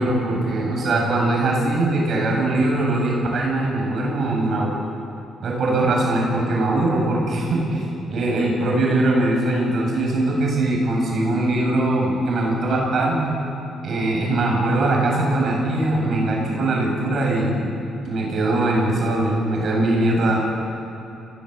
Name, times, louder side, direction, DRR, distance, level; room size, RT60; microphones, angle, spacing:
voice 1, 0.0-4.7 5.4-13.4 13.8-17.7 18.0-20.4, right 2 dB, 60° right, -1 dB, 7.9 m, -21 dB
27.5 x 19.0 x 8.3 m, 3.0 s
cardioid pair, 90°, 0 cm